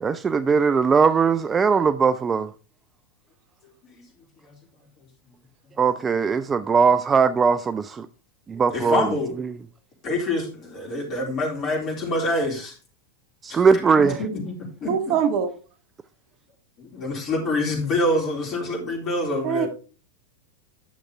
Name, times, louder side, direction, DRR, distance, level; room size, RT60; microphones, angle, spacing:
voice 1, 0.0-2.5 5.8-8.1 8.5-9.1 13.4-14.2, right 5 dB, 20° right, 0.4 m, -20 dB
voice 2, 8.7-9.3 10.0-12.8 13.5-15.1 16.9-19.7, left 1 dB, 30° left, 3.8 m, -26 dB
voice 3, 14.9-15.5 19.4-19.7, right 7 dB, 40° right, 0.9 m, -23 dB
10.5 x 6.4 x 3.5 m
figure-of-eight pair, 90°, 0 cm